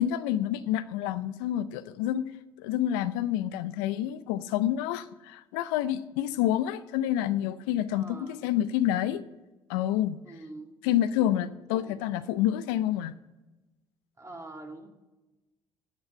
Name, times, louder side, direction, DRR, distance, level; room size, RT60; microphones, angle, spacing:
voice 1, 0.0-2.2 2.6-9.2 9.7-10.2 10.8-13.1, left 12 dB, 80° left, 13 dB, 0.5 m, -28 dB
voice 2, 7.9-8.4 10.2-10.7 11.2-11.3 11.7-12.0 14.2-14.9, right 2 dB, 25° right, 3 dB, 2.2 m, -44 dB
16.5 x 5.6 x 5.5 m, 1.1 s
hypercardioid pair, 60°, 12 cm